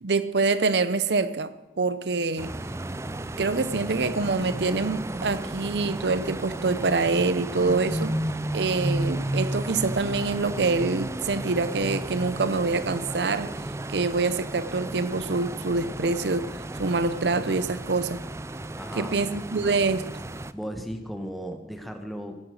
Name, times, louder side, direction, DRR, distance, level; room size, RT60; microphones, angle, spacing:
voice 1, 0.0-2.5 3.4-8.1 8.5-13.5 13.9-18.2 19.0-20.1, right 3 dB, 75° right, 0.7 m, -26 dB
sound 1, 2.4-20.5, right 1 dB, 15° right, 0.4 m, -33 dB
voice 2, 18.7-19.2 20.5-22.4, equal, ahead, 1.3 m, -36 dB
17.0 x 8.7 x 6.4 m
head